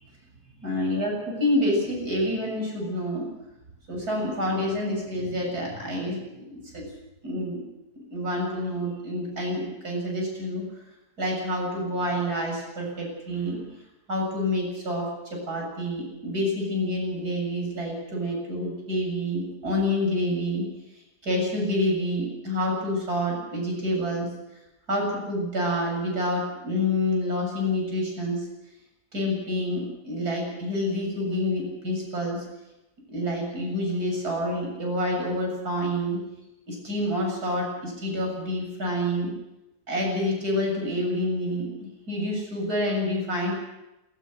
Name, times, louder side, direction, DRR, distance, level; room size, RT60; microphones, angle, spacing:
voice 1, 0.6-3.3 3.9-6.9 7.2-7.6 8.1-10.7 11.2-13.6 14.1-20.7 21.2-24.3 24.9-28.5 29.1-32.4 33.1-36.2 36.7-39.3 39.9-43.5, left 1 dB, 75° right, -1 dB, 8.1 m, -28 dB
21.5 x 19.5 x 6.6 m, 0.94 s
omnidirectional pair, 1.7 m